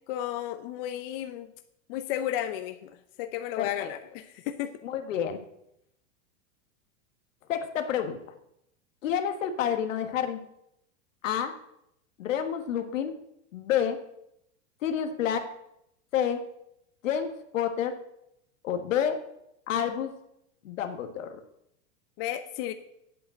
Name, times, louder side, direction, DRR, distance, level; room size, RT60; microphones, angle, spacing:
voice 1, 0.1-1.5 1.9-4.7 22.2-22.7, left 12 dB, 50° left, 9 dB, 0.7 m, -33 dB
voice 2, 3.6-3.9 4.8-5.4 7.5-8.2 9.0-10.4 11.2-11.5 12.2-13.2 13.5-14.0 14.8-15.5 16.1-16.4 17.0-17.9 18.6-19.2 19.7-20.1 20.6-21.4, left 8 dB, 85° left, 7 dB, 1.6 m, -29 dB
8.6 x 7.9 x 7.8 m, 0.80 s
supercardioid pair, 140°, 38 cm